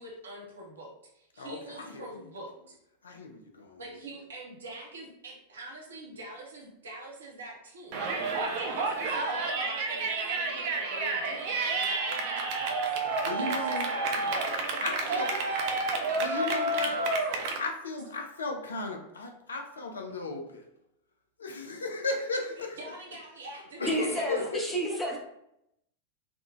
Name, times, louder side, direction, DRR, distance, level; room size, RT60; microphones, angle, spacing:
voice 1, 0.0-2.8 3.8-17.1 22.5-24.5 24.9-25.0, right 1 dB, 65° right, -1 dB, 0.8 m, -44 dB
voice 2, 1.4-2.1 3.0-3.8 13.2-13.9 14.8-15.3 16.2-17.0 17.5-20.6 21.4-22.8 23.8-24.6, left 3 dB, 70° left, 3 dB, 0.5 m, -35 dB
Yell, 7.9-17.6, right 3 dB, 45° right, 0.4 m, -30 dB
voice 3, 23.9-25.2, right 1 dB, 10° left, 0 dB, 0.7 m, -30 dB
3.6 x 2.2 x 2.4 m, 0.80 s
figure-of-eight pair, 90°, 0 cm